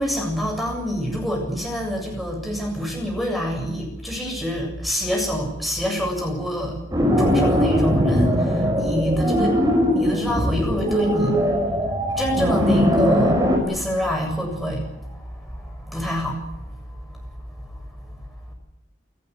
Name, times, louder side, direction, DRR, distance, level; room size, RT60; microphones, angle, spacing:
voice 1, 0.0-6.8 7.2-9.6 9.9-11.5 12.1-17.2 17.6-17.8 18.1-18.2, equal, ahead, 0 dB, 7.6 m, -27 dB
sound 1, 6.9-13.6, equal, 20° right, 6.1 m, -20 dB
29.5 x 15.0 x 9.6 m, 0.87 s
head